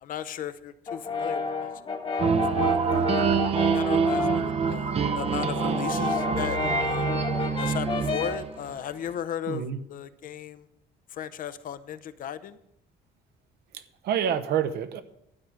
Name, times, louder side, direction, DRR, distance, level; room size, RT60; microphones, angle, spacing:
voice 1, 0.0-1.7 2.2-3.3 3.7-7.1 7.6-10.7 11.1-12.6, left 10 dB, 55° left, 13 dB, 0.7 m, -36 dB
Brass instrument, 0.9-4.5 4.9-8.5, left 4 dB, 30° left, 1.2 m, -31 dB
sound 1, 2.2-8.8, right 5 dB, 35° right, 0.6 m, -26 dB
voice 2, 9.5-9.8 13.7-15.0, right 9 dB, 70° right, 11 dB, 1.0 m, -28 dB
12.5 x 4.9 x 8.1 m, 0.80 s
cardioid pair, 110°, 17 cm